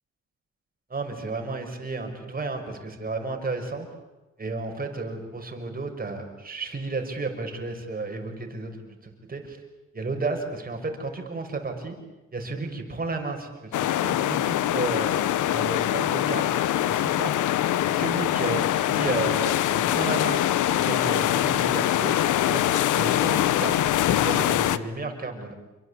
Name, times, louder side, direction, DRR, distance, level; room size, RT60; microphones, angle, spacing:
voice 1, 0.9-3.9 4.4-8.8 9.0-9.6 9.9-12.0 12.3-13.5 13.8-15.1 15.5-16.6 16.9-17.3 17.9-20.4 20.8-22.6 22.9-25.5, right 3 dB, 30° right, 4 dB, 6.0 m, -32 dB
sound 1, 13.7-24.8, left 12 dB, 80° left, 1.1 m, -23 dB
28.0 x 24.0 x 8.5 m, 1.1 s
cardioid pair, 90°, 30 cm